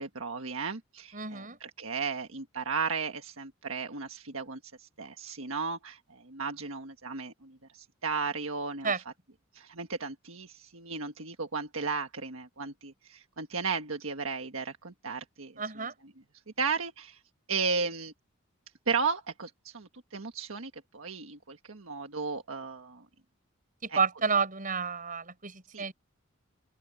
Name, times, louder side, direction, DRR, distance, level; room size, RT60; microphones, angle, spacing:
voice 1, 0.0-8.9 9.5-15.6 16.6-17.2 17.5-18.1 18.9-23.0 23.9-24.0 25.7-25.8, right 5 dB, 80° right, 1.5 m, -35 dB
voice 2, 1.1-1.6 8.8-9.0 15.6-16.0 23.8-25.9, right 5 dB, 40° right, 7.1 m, -30 dB
open air
head